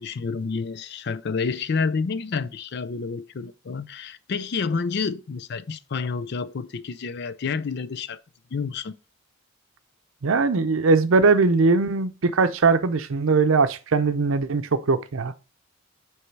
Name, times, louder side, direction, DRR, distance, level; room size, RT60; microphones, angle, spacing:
voice 1, 0.0-8.2 8.5-8.9, left 5 dB, 55° left, 0.4 m, -29 dB
voice 2, 10.2-15.3, right 4 dB, 75° right, 0.6 m, -20 dB
8.2 x 3.3 x 4.6 m
head